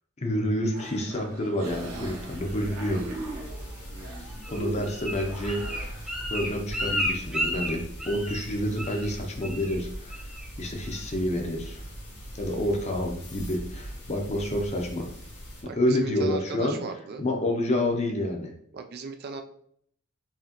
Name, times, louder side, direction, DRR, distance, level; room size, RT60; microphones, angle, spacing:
voice 1, 0.2-3.0 4.2-5.9 6.3-10.2 10.6-11.8 12.4-15.1 15.8-16.8 17.2-18.5, left 1 dB, 30° left, 2 dB, 0.7 m, -28 dB
sound 1, 0.7-7.4, right 1 dB, 90° right, 0.8 m, -41 dB
sound 2, 1.6-15.6, equal, 90° left, 1.6 m, -41 dB
Bird, 4.4-8.5 8.8-9.1 9.4-9.8 10.1-10.5 10.9-11.0, equal, 5° right, 0.8 m, -32 dB
voice 2, 15.6-17.2 18.7-19.4, right 5 dB, 45° right, 6 dB, 0.3 m, -37 dB
4.9 x 3.0 x 2.9 m, 0.66 s
head